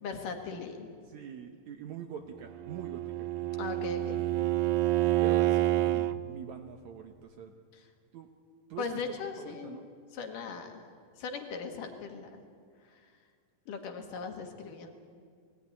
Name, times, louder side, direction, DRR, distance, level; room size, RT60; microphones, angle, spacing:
voice 1, 0.0-0.9 3.6-4.2 7.7-7.9 8.8-9.8 10.1-12.4 12.8-13.1 13.7-14.9, left 5 dB, 65° left, 4 dB, 3.2 m, -39 dB
voice 2, 1.1-3.3 3.9-4.4 5.2-7.5 8.1-8.3 8.7-9.0 9.4-9.9, right 8 dB, 70° right, 5 dB, 1.9 m, -44 dB
Bowed string instrument, 2.5-6.2, right 15 dB, 90° right, 1.6 m, -28 dB
19.5 x 17.5 x 9.9 m, 2.1 s
omnidirectional pair, 4.2 m